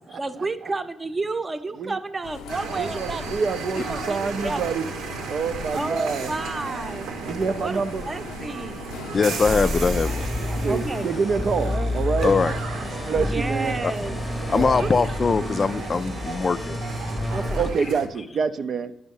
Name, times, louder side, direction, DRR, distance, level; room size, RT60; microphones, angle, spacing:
voice 1, 0.2-3.4 3.7-4.6 5.7-7.1 7.6-8.8 10.6-11.1 11.6-12.0 13.2-14.2 14.7-14.9 17.3-17.7, right 3 dB, 25° right, 0.8 m, -31 dB
sound 1, 2.2-12.7, left 7 dB, 85° left, 0.5 m, -40 dB
sound 2, 2.5-18.1, right 5 dB, 85° right, 1.1 m, -35 dB
voice 2, 2.8-4.8 5.2-6.3 7.2-8.0 10.5-12.3 13.1-13.8 14.5-14.9 17.6-18.9, right 5 dB, 55° right, 0.5 m, -27 dB
voice 3, 9.1-10.2 12.2-12.5 13.8-13.9 14.5-16.8, left 4 dB, 35° left, 0.3 m, -22 dB
sound 3, 9.1-17.7, left 1 dB, 15° left, 0.8 m, -29 dB
10.0 x 5.2 x 5.4 m
cardioid pair, 90°, 0 cm